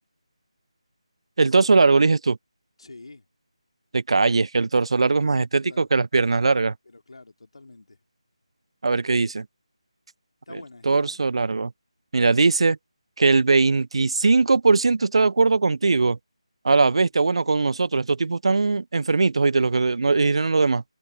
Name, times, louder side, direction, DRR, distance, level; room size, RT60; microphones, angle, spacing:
voice 1, 1.4-2.4 3.9-6.7 8.8-9.5 10.8-11.7 12.1-12.8 13.2-16.2 16.6-20.8, right 3 dB, 60° right, 0.4 m, -20 dB
voice 2, 2.8-3.3 5.2-5.9 6.9-8.0 10.5-11.2 16.7-17.1, left 3 dB, 65° left, 3.6 m, -46 dB
figure-of-eight pair, 160°, 3 cm